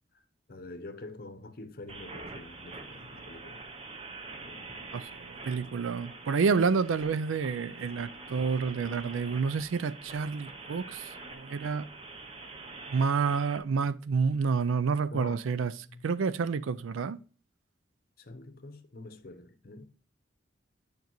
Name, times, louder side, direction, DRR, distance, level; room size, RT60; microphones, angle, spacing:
voice 1, 0.5-3.7 4.4-4.9 15.1-15.5 15.9-16.1 18.2-19.9, left 2 dB, 50° left, 0.7 m, -46 dB
sound 1, 1.9-13.6, right 3 dB, 30° right, 0.6 m, -45 dB
voice 2, 4.9-11.1 11.3-11.9 12.9-15.7 16.0-17.2, right 5 dB, 90° right, 0.4 m, -29 dB
9.4 x 5.2 x 3.0 m
head